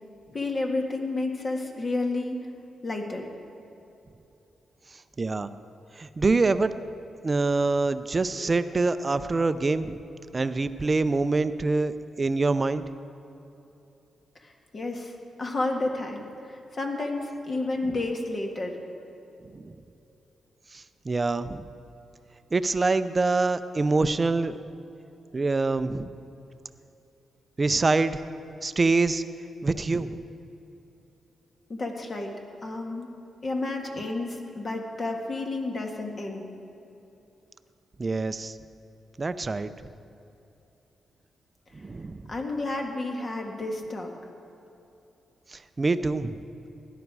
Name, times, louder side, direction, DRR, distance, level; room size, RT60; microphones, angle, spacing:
voice 1, 0.3-2.4 2.8-3.3 14.4-15.1 15.4-18.8 31.7-32.3 32.6-33.1 33.4-36.5 42.3-44.1, left 2 dB, 40° left, 2 dB, 1.8 m, -31 dB
voice 2, 5.2-5.5 6.0-6.7 7.2-10.0 10.3-12.8 17.8-18.0 19.5-19.7 20.7-21.7 22.5-24.6 25.3-26.1 27.6-28.2 28.6-29.2 29.6-30.2 38.0-38.5 39.2-39.7 41.7-42.2 45.5-46.4, right 3 dB, 30° right, 12 dB, 0.6 m, -25 dB
17.5 x 11.0 x 4.8 m, 2.9 s
cardioid pair, 90°, 0 cm